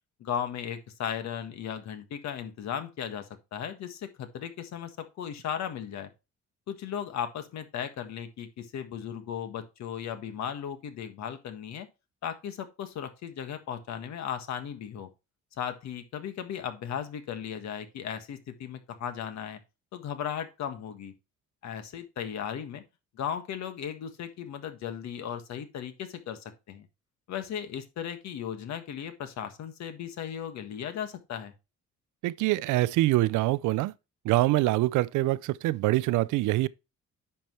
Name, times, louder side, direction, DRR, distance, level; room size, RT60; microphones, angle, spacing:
voice 1, 0.2-6.1 6.7-11.9 12.2-15.1 15.6-19.6 19.9-21.1 21.6-22.8 23.1-26.9 27.3-31.5, left 8 dB, 65° left, 1.5 m, -36 dB
voice 2, 32.2-33.9 34.2-36.7, right 18 dB, 90° right, 0.5 m, -25 dB
10.0 x 6.0 x 3.1 m
cardioid pair, 135°, 29 cm